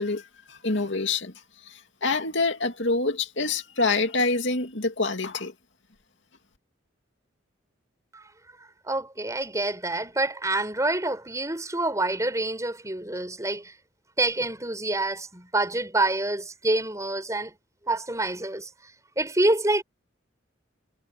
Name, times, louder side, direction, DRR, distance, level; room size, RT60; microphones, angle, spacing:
voice 1, 0.0-1.3 1.6-5.5, left 3 dB, 65° left, 2.5 m, -26 dB
voice 2, 8.8-13.7 14.2-17.5 17.9-18.7 19.2-19.8, right 2 dB, 15° right, 5.2 m, -27 dB
head